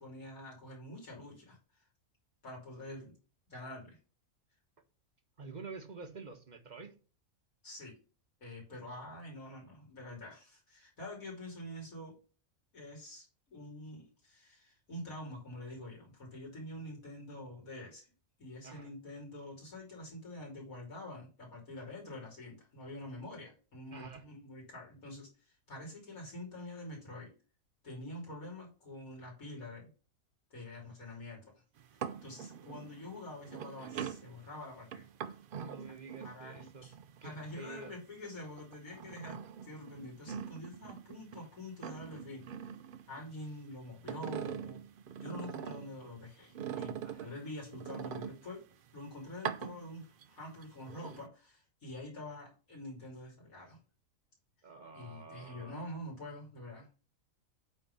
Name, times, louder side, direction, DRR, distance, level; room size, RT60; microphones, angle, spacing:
voice 1, 0.0-1.6 2.4-3.1 3.5-4.0 7.6-8.0 8.4-12.1 12.7-18.1 18.4-25.3 25.7-27.3 27.8-29.9 30.5-31.4 32.2-35.1 36.2-36.9 37.2-42.5 43.1-44.8 45.2-48.6 48.9-53.8 54.9-56.9, left 1 dB, 85° left, 3.7 m, -46 dB
voice 2, 5.4-6.9 18.6-18.9 23.9-24.2 35.5-36.9 37.2-37.9 47.0-47.3 54.6-55.8, right 4 dB, 35° right, 1.2 m, -48 dB
sound 1, 31.8-38.2 38.6-41.5 41.7-43.6 43.9-46.0 46.5-48.7 49.3-50.3 50.6-51.2, right 8 dB, 55° right, 0.6 m, -43 dB
8.3 x 3.8 x 5.5 m
omnidirectional pair, 1.4 m